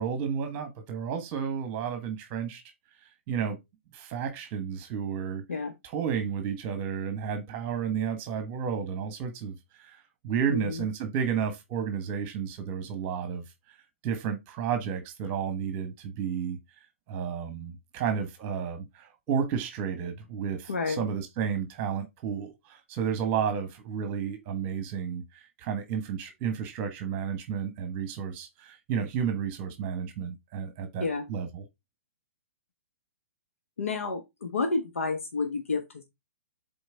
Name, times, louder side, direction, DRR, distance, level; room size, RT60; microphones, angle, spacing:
voice 1, 0.0-2.6 3.0-3.6 3.9-13.4 14.0-16.6 17.1-31.7, right 7 dB, 30° right, 1.3 m, -32 dB
voice 2, 10.5-10.8 20.7-21.0 31.0-31.3 33.8-36.0, left 4 dB, 80° left, 1.3 m, -30 dB
7.8 x 4.0 x 3.4 m
hypercardioid pair, 135°, 7 cm